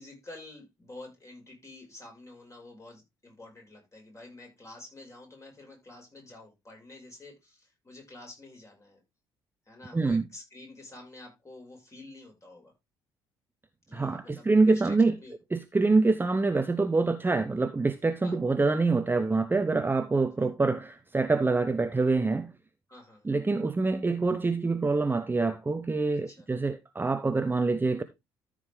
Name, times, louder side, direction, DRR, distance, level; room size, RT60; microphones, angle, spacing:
voice 1, 0.0-9.0 9.7-12.7 13.9-15.3 18.2-18.4 20.4-20.5 22.9-23.3 26.3-26.5, left 2 dB, 25° left, 5.4 m, -49 dB
voice 2, 9.9-10.3 13.9-15.2 15.5-22.5 23.2-28.0, right 3 dB, 15° right, 0.8 m, -25 dB
13.5 x 5.0 x 3.6 m
figure-of-eight pair, 50°, 12 cm